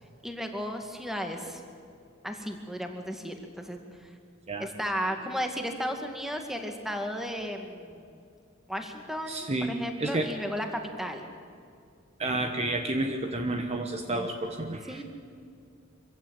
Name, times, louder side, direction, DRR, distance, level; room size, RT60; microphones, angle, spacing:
voice 1, 0.2-1.6 2.2-4.1 4.6-8.2 8.7-10.7 11.0-11.2 14.9-15.0, equal, ahead, 4 dB, 2.1 m, -34 dB
voice 2, 9.3-10.3 12.2-15.0, right 2 dB, 30° right, 5 dB, 1.2 m, -30 dB
25.0 x 16.0 x 8.9 m, 2.4 s
head